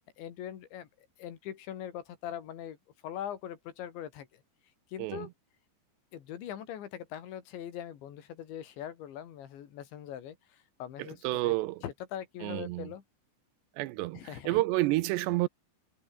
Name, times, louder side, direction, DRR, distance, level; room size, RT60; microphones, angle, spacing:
voice 1, 0.2-0.9 1.2-2.8 3.0-4.4 4.9-5.3 6.1-11.5 11.8-13.0 14.1-14.6, left 10 dB, 80° left, 4.8 m, -41 dB
voice 2, 11.0-11.8 12.4-12.9 13.8-15.5, right 19 dB, 80° right, 2.7 m, -30 dB
omnidirectional pair, 5.1 m